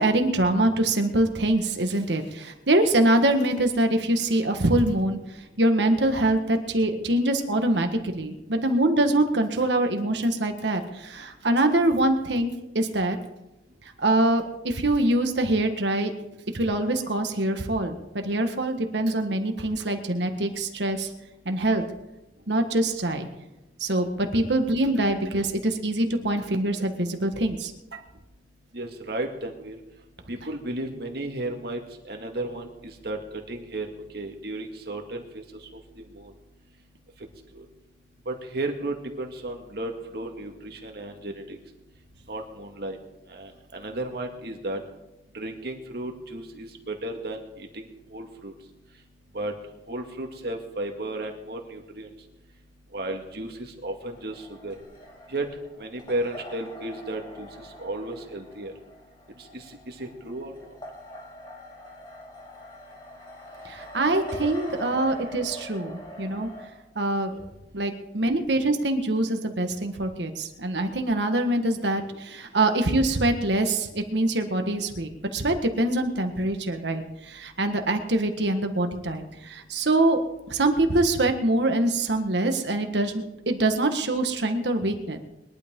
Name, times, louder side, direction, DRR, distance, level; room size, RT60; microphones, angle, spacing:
voice 1, 0.0-5.2 5.6-13.2 14.0-16.1 16.5-21.1 21.4-21.8 22.5-23.3 23.8-28.0 63.6-66.5 66.9-67.3 67.7-80.2 80.5-85.2, right 1 dB, 80° right, 5 dB, 1.6 m, -24 dB
voice 2, 28.7-29.8 30.3-33.2 33.5-33.9 34.1-35.4 36.2-36.3 37.5-37.7 38.3-41.6 42.3-43.0 43.3-44.8 45.3-48.5 49.3-49.5 49.9-52.1 52.9-54.7 55.3-55.5 55.8-57.5 57.8-58.7 59.5-60.5 67.3-67.4, right 2 dB, 60° right, 2 dB, 2.1 m, -34 dB
sound 1, 54.1-66.7, equal, 25° left, 2.8 m, -43 dB
22.0 x 11.5 x 3.8 m, 0.95 s
head